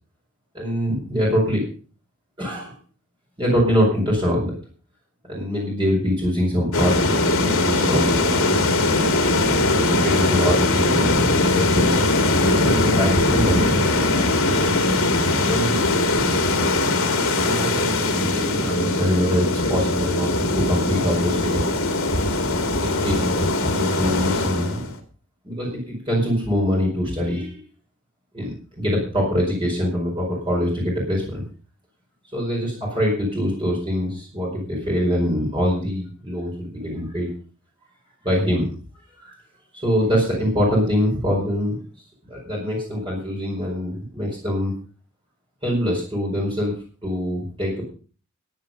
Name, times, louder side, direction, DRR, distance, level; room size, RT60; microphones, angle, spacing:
voice 1, 0.5-1.7 2.4-2.8 3.4-4.5 5.3-8.5 9.7-12.0 12.6-13.7 15.4-15.8 17.4-21.7 22.8-24.8 25.4-27.6 28.3-31.4 32.3-37.3 38.2-38.7 39.2-39.3 39.8-41.8 42.3-44.7 45.6-46.7 47.0-47.8, equal, 20° right, -3 dB, 4.9 m, -24 dB
sound 1, 6.7-24.9, left 2 dB, 75° left, 2.7 m, -20 dB
14.5 x 10.0 x 5.4 m, 0.39 s
head